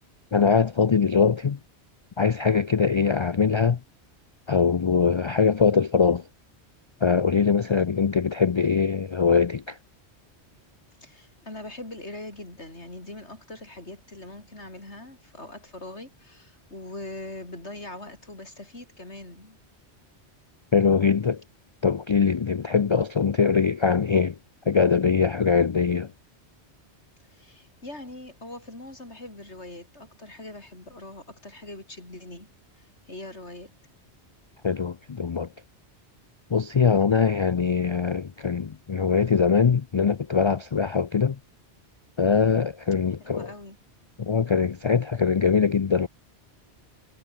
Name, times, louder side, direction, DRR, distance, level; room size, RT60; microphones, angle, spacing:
voice 1, 0.3-1.6 2.2-3.8 4.5-6.2 7.0-9.8 20.7-21.4 21.8-24.4 24.7-26.1 34.6-35.5 36.5-41.4 42.2-43.5 44.2-46.1, left 6 dB, 50° left, 0.3 m, -22 dB
voice 2, 11.0-19.6 27.3-32.5 32.8-33.8 36.9-37.3 43.2-43.8, left 2 dB, 80° left, 6.5 m, -42 dB
omnidirectional pair, 1.1 m